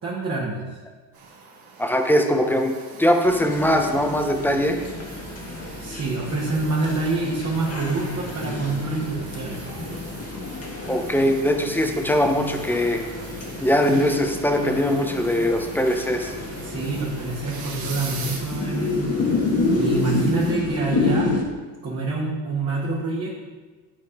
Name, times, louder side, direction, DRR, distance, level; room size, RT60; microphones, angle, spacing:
voice 1, 0.0-0.6 5.8-9.6 16.6-19.4 19.7-21.3 21.8-23.3, right 3 dB, 30° right, -5 dB, 1.8 m, -26 dB
sound 1, 1.1-20.5, right 4 dB, 50° right, 2.2 m, -43 dB
voice 2, 1.8-2.7 3.0-4.8 10.9-13.0 13.6-16.3, equal, 5° left, 4 dB, 1.0 m, -21 dB
sound 2, 3.2-21.4, left 3 dB, 30° left, 1.6 m, -29 dB
11.0 x 4.2 x 5.1 m, 1.3 s
supercardioid pair, 95°, 46 cm